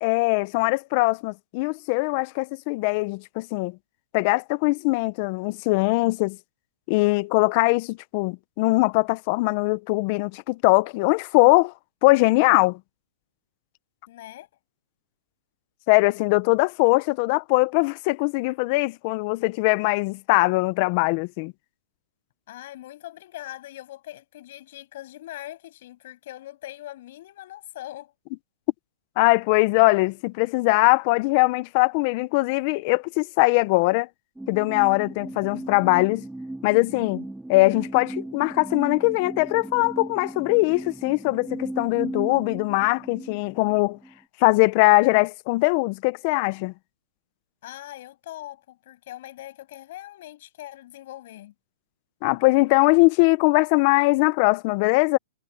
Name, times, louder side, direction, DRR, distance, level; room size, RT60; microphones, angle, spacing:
voice 1, 0.0-3.8 4.1-6.4 6.9-11.7 12.0-12.8 15.9-21.5 29.2-34.1 34.5-36.2 36.6-37.2 37.5-44.0 44.4-46.7 52.2-55.2, left 25 dB, 40° left, 0.7 m, -21 dB
voice 2, 14.1-14.5 22.5-28.1 47.6-51.5, left 14 dB, 55° left, 6.8 m, -41 dB
sound 1, 34.4-44.2, right 2 dB, 5° right, 1.4 m, -37 dB
hypercardioid pair, 155°, 0 cm